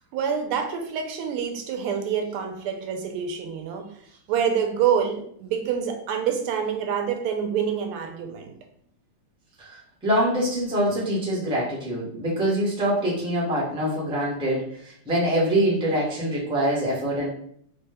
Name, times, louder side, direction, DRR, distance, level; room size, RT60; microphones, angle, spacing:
voice 1, 0.1-3.9 4.3-8.6, right 7 dB, 90° right, 5 dB, 1.5 m, -26 dB
voice 2, 9.6-17.3, right 1 dB, 5° right, -5 dB, 0.6 m, -24 dB
4.1 x 2.2 x 3.3 m, 0.64 s
omnidirectional pair, 2.4 m